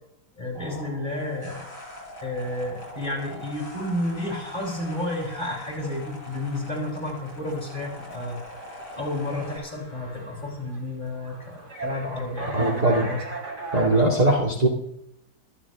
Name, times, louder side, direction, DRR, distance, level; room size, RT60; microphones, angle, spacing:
voice 1, 0.4-1.6 2.2-8.4 8.9-13.2, left 1 dB, 25° left, -3 dB, 8.4 m, -31 dB
sound 1, 0.5-9.6, left 1 dB, 60° left, 7.0 m, -42 dB
sound 2, 2.2-14.0, right 2 dB, 40° right, 4.1 m, -40 dB
voice 2, 12.5-13.1 13.7-14.7, right 1 dB, 20° right, -2 dB, 2.3 m, -20 dB
23.0 x 14.5 x 3.6 m, 0.77 s
omnidirectional pair, 1.9 m